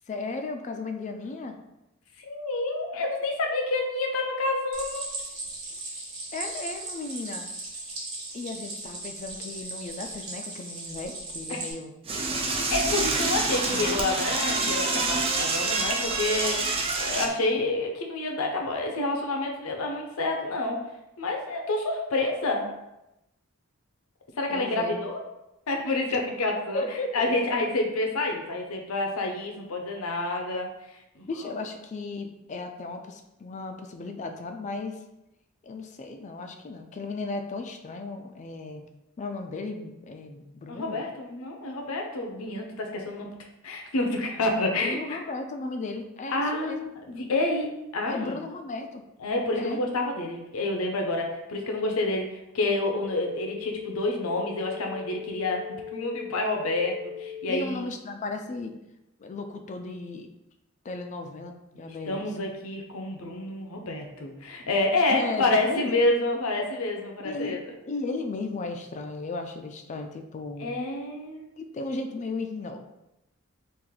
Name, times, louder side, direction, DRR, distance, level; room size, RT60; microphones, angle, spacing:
voice 1, 0.1-1.6 6.3-7.5 8.3-11.9 13.7-14.3 24.5-25.0 26.1-26.2 26.7-27.3 31.3-35.0 35.6-38.9 39.2-41.0 44.6-46.8 48.1-49.0 49.5-49.8 57.5-58.7 59.2-60.3 60.8-62.5 65.1-65.9 67.2-67.6 67.9-70.7 71.6-72.8, left 3 dB, 35° left, 6 dB, 0.3 m, -35 dB
voice 2, 2.2-5.1 11.5-11.6 12.7-20.8 21.2-22.7 24.4-25.2 25.7-26.8 27.1-30.7 31.2-31.3 40.7-43.3 43.6-45.2 46.3-48.4 49.2-52.3 52.5-55.6 55.9-57.9 61.8-67.6 70.6-71.5, left 2 dB, 75° left, 2 dB, 0.6 m, -28 dB
Stream, 4.7-11.7, right 2 dB, 85° right, 1.2 m, -37 dB
Door / Toilet flush, 12.1-17.3, right 3 dB, 25° right, 0.4 m, -27 dB
sound 1, 52.7-57.7, left 8 dB, 60° right, 1.2 m, -39 dB
3.3 x 2.5 x 3.6 m, 0.90 s
head